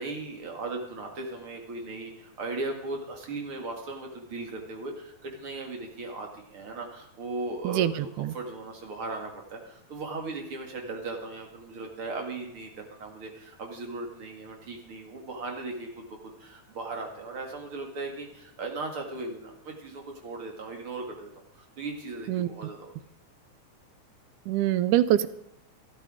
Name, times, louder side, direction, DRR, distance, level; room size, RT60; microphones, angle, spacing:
voice 1, 0.0-21.3 21.5-22.9, right 3 dB, 45° right, 2 dB, 2.6 m, -37 dB
voice 2, 7.6-8.3 22.3-22.5 24.5-25.3, right 12 dB, 80° right, 15 dB, 2.0 m, -24 dB
12.5 x 12.5 x 4.9 m, 0.80 s
omnidirectional pair, 3.6 m